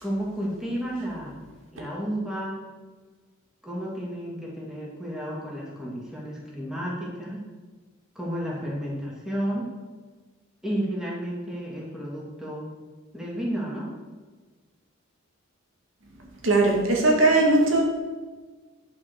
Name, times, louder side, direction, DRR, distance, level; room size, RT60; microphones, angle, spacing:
voice 1, 0.0-1.4 1.7-2.6 3.6-7.4 8.1-9.7 10.6-12.7 13.1-13.9, equal, 5° right, -5 dB, 2.8 m, -32 dB
voice 2, 16.4-17.8, right 2 dB, 75° right, -1 dB, 2.3 m, -19 dB
11.0 x 6.0 x 6.6 m, 1.4 s
head